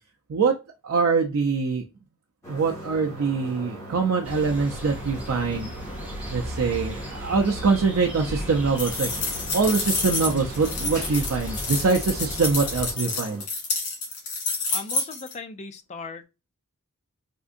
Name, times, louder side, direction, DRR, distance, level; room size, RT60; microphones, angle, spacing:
voice 1, 0.8-1.8 2.5-5.7 6.3-9.1 9.5-13.4, right 4 dB, 70° right, 0.5 m, -24 dB
sound 1, 2.4-13.4, equal, 15° left, 1.3 m, -41 dB
sound 2, 4.2-12.9, equal, 5° right, 0.9 m, -36 dB
sound 3, 8.8-15.3, left 3 dB, 85° left, 1.6 m, -29 dB
voice 2, 14.7-16.2, left 4 dB, 30° left, 0.4 m, -37 dB
3.6 x 2.6 x 2.5 m
head